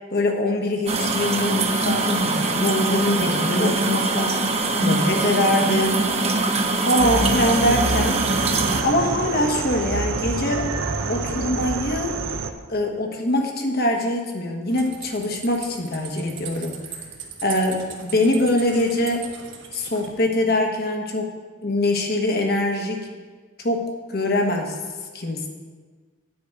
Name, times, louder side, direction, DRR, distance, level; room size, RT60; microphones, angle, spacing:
voice 1, 0.1-6.1 6.8-8.2 8.8-10.7 11.1-12.2 12.7-16.8 17.4-19.2 19.7-21.3 21.6-23.0 23.6-24.7 25.1-25.5, left 1 dB, 50° left, 3 dB, 1.3 m, -23 dB
sound 1, 0.9-8.8, right 2 dB, 30° right, 0.8 m, -22 dB
sound 2, 7.0-12.5, right 3 dB, 80° right, 0.7 m, -27 dB
sound 3, 14.7-20.1, right 7 dB, 60° right, 1.3 m, -39 dB
9.4 x 5.2 x 8.1 m, 1.5 s
head